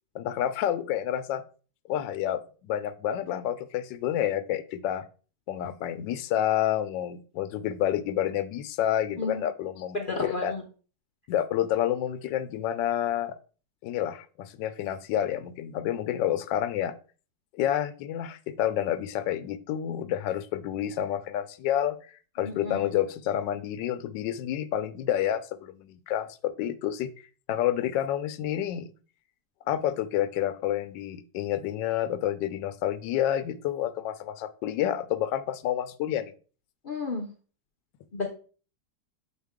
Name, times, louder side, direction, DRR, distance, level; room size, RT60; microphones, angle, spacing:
voice 1, 0.1-1.4 1.9-5.0 5.5-10.0 10.2-10.5 11.3-13.4 13.8-16.9 17.6-22.0 22.4-28.8 29.7-36.3, left 11 dB, 80° left, 12 dB, 1.3 m, -29 dB
voice 2, 9.9-10.6 22.4-23.0 36.8-37.3 38.1-38.3, left 3 dB, 55° left, 0 dB, 0.5 m, -32 dB
7.3 x 4.0 x 3.5 m, 0.38 s
omnidirectional pair, 1.9 m